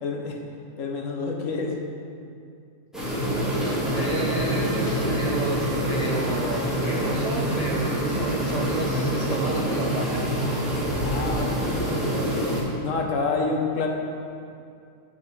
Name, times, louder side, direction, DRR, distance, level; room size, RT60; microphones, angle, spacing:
voice 1, 0.0-0.4 0.8-1.7 11.0-12.5 12.8-13.9, left 4 dB, 75° left, 1 dB, 1.2 m, -28 dB
sound 1, 2.9-12.6, equal, ahead, 1.8 m, -26 dB
voice 2, 3.9-10.4, right 2 dB, 50° right, -2 dB, 0.4 m, -32 dB
7.0 x 5.9 x 4.6 m, 2.4 s
omnidirectional pair, 1.4 m